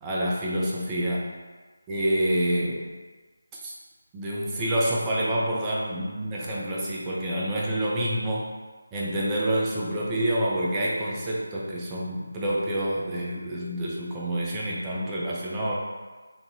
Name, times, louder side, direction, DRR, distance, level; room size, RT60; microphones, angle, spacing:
voice 1, 0.0-1.2 1.9-2.9 3.6-3.7 4.1-8.5 8.9-15.8, right 1 dB, 15° right, -5 dB, 0.4 m, -27 dB
3.2 x 2.2 x 2.6 m, 1.3 s
figure-of-eight pair, 160°, 0 cm